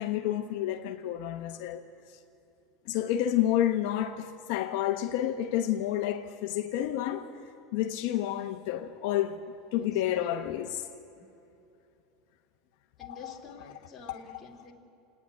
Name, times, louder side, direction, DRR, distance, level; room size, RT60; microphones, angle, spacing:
voice 1, 0.0-1.8 2.9-7.3 7.7-9.4 9.7-10.8 13.0-13.3 14.1-14.4, left 12 dB, 60° left, 1.0 m, -30 dB
voice 2, 13.0-14.7, left 4 dB, 15° left, 2.5 m, -48 dB
28.0 x 9.9 x 9.4 m
supercardioid pair, 165°, 0 cm